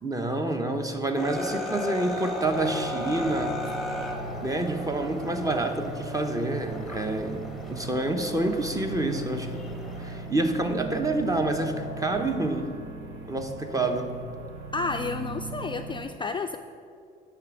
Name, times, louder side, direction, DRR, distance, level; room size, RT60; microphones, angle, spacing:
voice 1, 0.0-3.6 4.4-7.4 7.7-9.7 10.0-12.7 13.3-14.1, right 2 dB, 15° right, 6 dB, 0.8 m, -28 dB
sound 1, 1.1-10.3, left 2 dB, ahead, 1.1 m, -36 dB
sound 2, 2.4-16.0, right 3 dB, 85° right, 1.4 m, -39 dB
voice 2, 14.7-16.6, left 4 dB, 25° left, 6 dB, 0.3 m, -31 dB
9.9 x 3.4 x 7.1 m, 2.3 s
cardioid pair, 90°, 20 cm